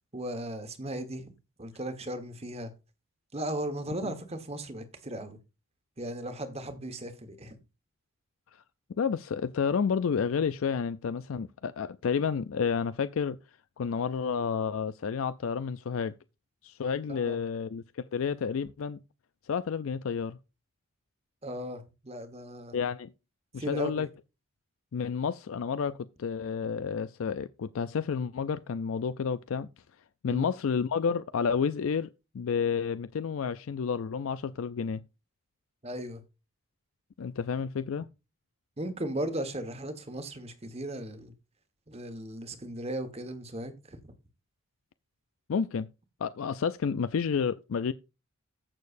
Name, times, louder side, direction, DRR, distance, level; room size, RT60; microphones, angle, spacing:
voice 1, 0.1-1.3 1.6-2.7 3.3-5.4 6.0-7.6 17.1-17.4 21.4-22.8 23.6-24.1 30.3-30.4 35.8-36.2 38.8-41.3 41.9-44.1, right 1 dB, 30° right, 1.4 m, -37 dB
voice 2, 9.0-13.4 13.8-16.1 16.6-19.0 19.5-20.4 22.7-23.1 23.5-24.1 24.9-29.7 30.2-32.1 32.3-35.0 37.2-38.1 45.5-45.9 46.2-47.9, left 6 dB, 70° left, 0.4 m, -30 dB
15.0 x 6.6 x 2.6 m
head